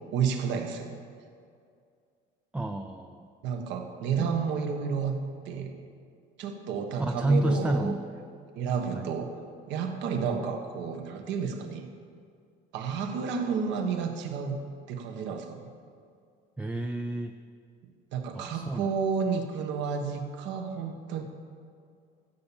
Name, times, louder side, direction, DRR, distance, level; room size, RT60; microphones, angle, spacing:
voice 1, 0.1-1.0 3.4-5.2 5.4-5.7 6.4-7.9 8.5-9.3 9.7-11.9 12.7-14.6 14.9-15.7 18.1-21.2, right 6 dB, 65° right, 5 dB, 1.4 m, -31 dB
voice 2, 2.5-3.3 4.2-4.3 7.0-8.0 8.9-9.1 16.6-17.3 18.3-18.9, right 1 dB, 5° right, 6 dB, 0.4 m, -29 dB
15.0 x 7.2 x 7.0 m, 2.3 s
cardioid pair, 155°, 20 cm